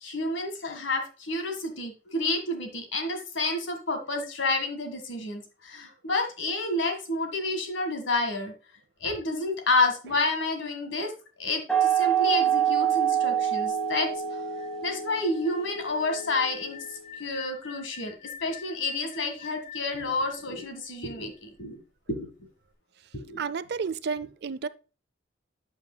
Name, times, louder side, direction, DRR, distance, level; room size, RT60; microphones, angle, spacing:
voice 1, 0.0-8.5 9.0-11.1 11.4-14.1 14.8-16.8 17.2-18.1 18.4-21.8 22.1-22.3 23.1-23.4, left 2 dB, 70° left, 1.7 m, -29 dB
sound 1, 11.7-17.1, right 9 dB, 5° left, 0.9 m, -27 dB
sound 2, 14.5-21.4, left 9 dB, 40° left, 3.1 m, -47 dB
voice 2, 23.4-24.7, right 5 dB, 55° right, 0.5 m, -31 dB
8.7 x 8.0 x 2.2 m
head